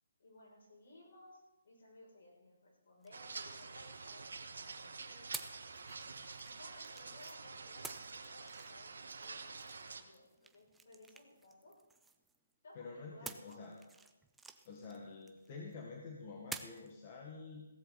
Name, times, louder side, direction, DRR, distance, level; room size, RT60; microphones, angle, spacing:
voice 1, 0.2-5.4 6.4-11.7 12.6-13.6, left 1 dB, 60° left, -2 dB, 7.1 m, -60 dB
sound 1, 3.0-4.5 5.3-7.4 7.8-12.5 13.3-15.7 16.5-16.9, right 4 dB, 5° right, 0.5 m, -52 dB
sound 2, 3.1-10.0, right 4 dB, 80° right, 1.8 m, -48 dB
voice 2, 12.7-13.8 14.6-17.7, left 4 dB, 25° left, 0 dB, 1.8 m, -48 dB
16.5 x 14.5 x 4.2 m, 1.0 s
hypercardioid pair, 170°, 0 cm